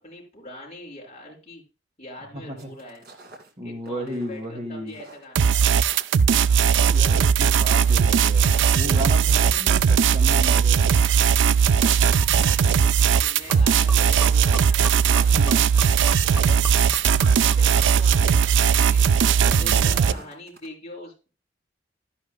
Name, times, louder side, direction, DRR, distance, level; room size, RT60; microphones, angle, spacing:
voice 1, 0.0-1.6 2.0-3.0 3.6-5.8 12.2-12.9 13.2-14.9 15.3-16.6 17.1-19.1 19.5-21.3, left 1 dB, 35° left, -1 dB, 5.6 m, -42 dB
voice 2, 2.3-2.7 3.6-5.0 6.7-10.9 15.3-15.7 19.4-20.2, equal, 35° right, 4 dB, 2.1 m, -34 dB
sound 1, 2.6-3.5 3.9-4.5 4.7-20.7, right 2 dB, 55° right, 2.1 m, -46 dB
sound 2, 5.4-20.1, right 7 dB, 90° right, 0.4 m, -18 dB
Gurgling / Liquid, 12.2-19.0, left 1 dB, 15° right, 0.9 m, -40 dB
13.0 x 10.5 x 2.2 m, 0.30 s
head